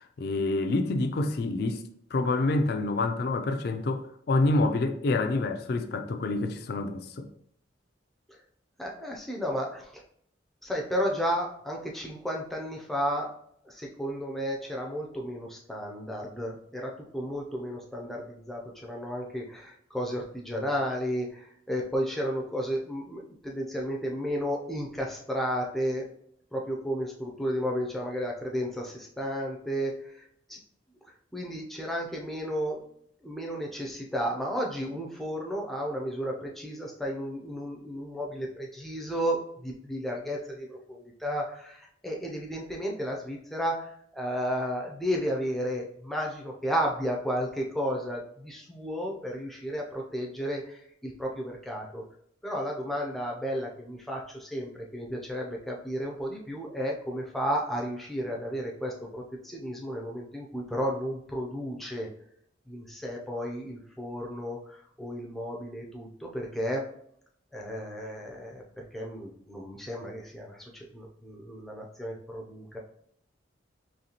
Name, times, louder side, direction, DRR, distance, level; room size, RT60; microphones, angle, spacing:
voice 1, 0.0-1.8 2.1-7.3, left 2 dB, 55° left, 0.4 m, -27 dB
voice 2, 8.8-9.9 10.6-13.4 13.6-26.1 26.5-30.2 30.5-30.6 31.3-32.8 33.2-52.0 52.4-62.1 62.7-66.8 67.5-72.8, equal, ahead, 0.5 m, -33 dB
4.1 x 3.1 x 2.9 m
head